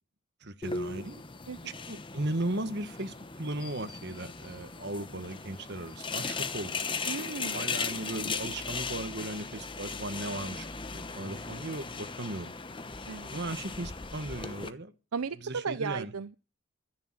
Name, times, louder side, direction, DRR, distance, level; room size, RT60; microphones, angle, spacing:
voice 1, 0.4-1.2 1.9-6.8 7.5-10.7 10.9-12.5 13.3-14.9 15.4-16.1, right 1 dB, 50° right, 1.6 m, -36 dB
sound 1, 0.6-14.7, left 4 dB, 20° left, 1.0 m, -38 dB
voice 2, 7.1-7.6 13.1-13.3 15.1-16.4, right 5 dB, 85° right, 0.7 m, -35 dB
13.0 x 10.5 x 7.6 m
head